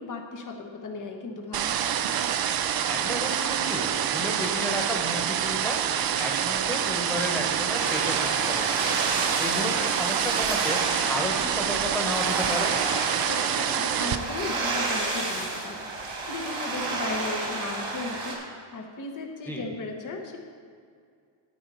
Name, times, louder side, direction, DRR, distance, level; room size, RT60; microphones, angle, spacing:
voice 1, 0.0-1.8 13.3-15.9 16.3-20.4, left 3 dB, 40° left, 3 dB, 1.1 m, -36 dB
sound 1, 1.5-14.2, right 9 dB, 50° right, 0.5 m, -27 dB
voice 2, 2.9-5.8 6.2-9.0 9.4-10.8 11.1-12.8 19.5-19.6, left 1 dB, 5° left, 0 dB, 1.3 m, -33 dB
sound 2, 7.8-18.3, right 3 dB, 90° right, 2.7 m, -31 dB
9.6 x 9.5 x 4.2 m, 2.3 s
cardioid pair, 140°, 48 cm